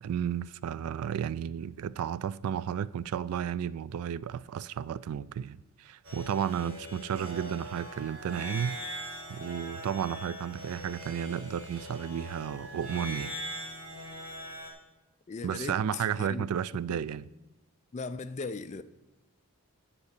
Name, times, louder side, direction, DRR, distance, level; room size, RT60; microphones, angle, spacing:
voice 1, 0.0-9.0 9.3-13.3 15.4-17.2, right 8 dB, 80° right, 0.3 m, -33 dB
sound 1, 6.0-14.7, equal, 60° right, 2.2 m, -41 dB
voice 2, 15.3-16.5 16.9-17.0 17.9-18.8, left 4 dB, 30° left, 0.3 m, -38 dB
8.2 x 6.7 x 6.6 m
head